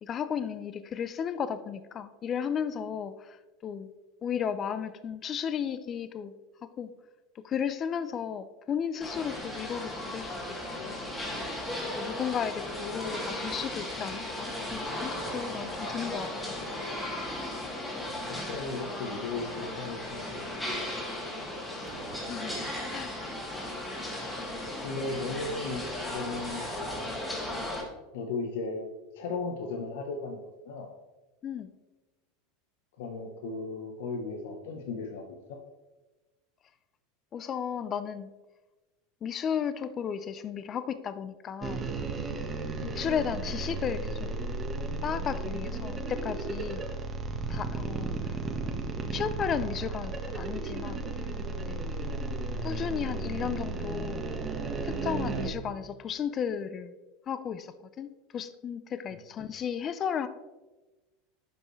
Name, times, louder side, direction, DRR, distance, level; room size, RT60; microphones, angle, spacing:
voice 1, 0.0-3.9 4.2-6.3 6.8-6.9 7.4-10.3 10.8-11.0 11.9-16.6 22.3-22.6 22.9-23.2 23.5-23.7 31.4-31.7 37.3-38.3 39.2-41.8 42.9-44.3 45.0-46.8 47.5-48.4 49.1-51.0 51.6-51.8 52.6-54.3 54.8-56.9 57.3-60.3, left 8 dB, 35° left, 13 dB, 0.5 m, -34 dB
sound 1, 9.0-27.8, left 1 dB, 10° left, 2.3 m, -36 dB
sound 2, 14.6-16.3 21.3-22.9 25.7-27.4, right 5 dB, 50° right, 1.3 m, -49 dB
voice 2, 18.2-20.8 21.5-21.7 24.8-25.8 26.1-27.1 28.1-28.9 29.1-30.9 33.0-35.2 35.5-35.6 42.8-43.0 59.1-59.2, left 3 dB, 75° left, 3 dB, 0.9 m, -36 dB
sound 3, 41.6-55.5, right 3 dB, 25° right, 1.2 m, -34 dB
10.5 x 5.4 x 3.2 m, 1.1 s
supercardioid pair, 115°, 0 cm